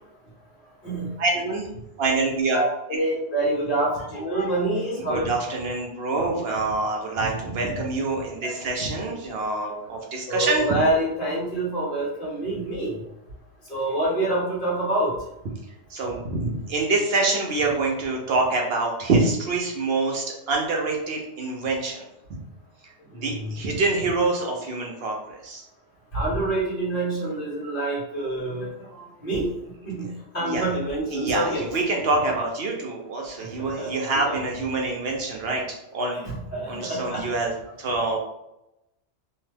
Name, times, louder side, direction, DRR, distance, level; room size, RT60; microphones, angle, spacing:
voice 1, 1.2-1.7 2.0-2.6 5.1-10.8 15.9-22.1 23.1-25.6 30.4-30.6 31.1-36.2 36.7-37.5 37.8-38.2, right 3 dB, 65° right, 0 dB, 0.8 m, -26 dB
voice 2, 2.5-5.3 8.4-8.7 10.3-13.0 13.7-15.1 23.2-23.5 26.1-29.5 29.8-31.6 33.6-34.4 36.1-37.2, right 1 dB, 50° left, -6 dB, 1.2 m, -27 dB
2.8 x 2.2 x 3.2 m, 0.86 s
omnidirectional pair, 1.2 m